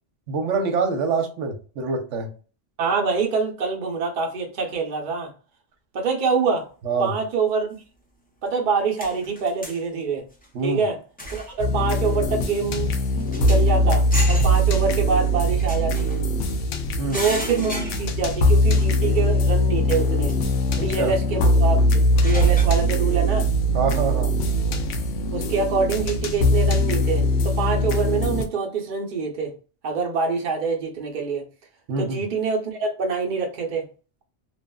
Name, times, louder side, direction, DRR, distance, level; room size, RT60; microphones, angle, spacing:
voice 1, 0.3-2.3 6.8-7.2 10.5-10.8 17.0-17.2 21.0-21.1 23.7-24.4 31.9-32.2, right 4 dB, 80° right, 1.0 m, -25 dB
voice 2, 2.8-5.3 5.9-6.7 7.0-7.7 8.4-10.3 10.6-11.0 11.3-16.1 17.1-20.4 20.7-23.5 25.3-29.5 29.8-31.4 32.0-33.8, right 4 dB, 50° right, 0.8 m, -25 dB
sound 1, 8.5-8.6 9.0-9.8 10.3-10.5 11.2-11.6 12.0-12.2 12.6-12.7 12.9-13.7 14.1-14.6 15.6-16.5 17.1-18.4 18.8-18.9 20.3-20.4 21.9-22.6, equal, 10° left, 0.5 m, -34 dB
sound 2, 11.6-28.4, equal, 90° left, 0.9 m, -21 dB
2.8 x 2.4 x 2.2 m
omnidirectional pair, 1.2 m